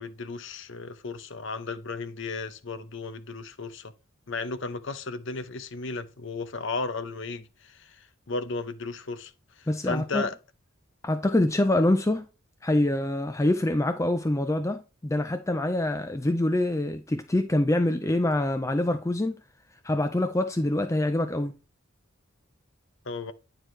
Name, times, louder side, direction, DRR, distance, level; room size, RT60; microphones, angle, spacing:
voice 1, 0.0-3.9 4.3-9.3 9.6-10.3 23.1-23.3, left 3 dB, 60° left, 0.8 m, -34 dB
voice 2, 9.7-10.3 11.0-12.3 12.6-19.4 19.8-21.5, left 1 dB, 15° left, 0.4 m, -25 dB
9.5 x 4.7 x 3.2 m
head